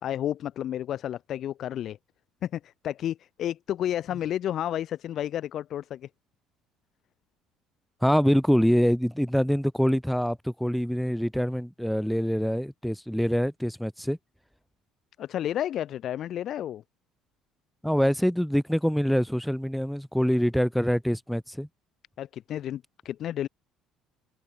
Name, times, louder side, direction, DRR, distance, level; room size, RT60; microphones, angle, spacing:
voice 1, 0.0-2.0 2.4-6.1 15.2-16.8 22.2-23.5, left 11 dB, 55° left, 1.7 m, -31 dB
voice 2, 8.0-14.2 17.8-21.7, equal, ahead, 0.5 m, -25 dB
cardioid pair, 115°, 0 cm